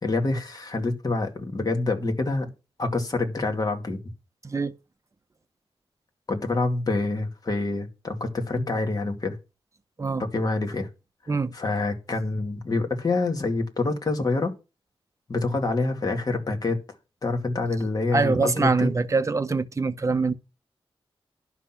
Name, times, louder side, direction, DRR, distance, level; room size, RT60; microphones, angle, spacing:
voice 1, 0.0-2.5 2.8-4.0 6.3-9.4 10.3-10.9 11.5-14.5 15.3-16.8 17.2-18.9, left 3 dB, 40° left, 2.2 m, -26 dB
voice 2, 4.4-4.7 10.0-10.2 11.3-11.5 18.1-20.3, right 4 dB, 30° right, 0.9 m, -24 dB
11.0 x 6.1 x 5.9 m
wide cardioid pair, 110°, 10 cm